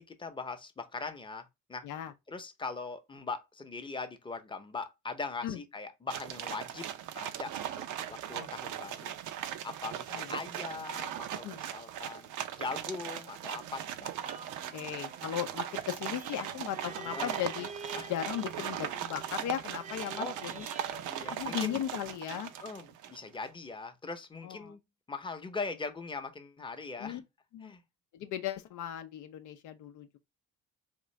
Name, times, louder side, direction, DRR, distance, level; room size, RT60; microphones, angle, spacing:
voice 1, 0.0-1.9 2.3-6.9 7.1-9.1 9.6-14.1 17.0-17.3 17.9-18.1 18.6-18.7 20.2-20.4 21.0-21.8 22.6-24.8 25.1-27.2 27.6-27.8, left 4 dB, 15° left, 0.6 m, -41 dB
sound 1, 6.1-23.3, right 10 dB, 80° right, 0.5 m, -39 dB
sound 2, 14.2-22.1 22.6-22.7, right 3 dB, 25° right, 0.6 m, -48 dB
voice 2, 14.7-17.7 18.1-20.7 21.3-22.5 24.4-24.7 27.0-27.2 27.5-27.7 28.1-30.2, left 10 dB, 85° left, 0.5 m, -37 dB
3.6 x 2.5 x 3.0 m
cardioid pair, 90°, 30 cm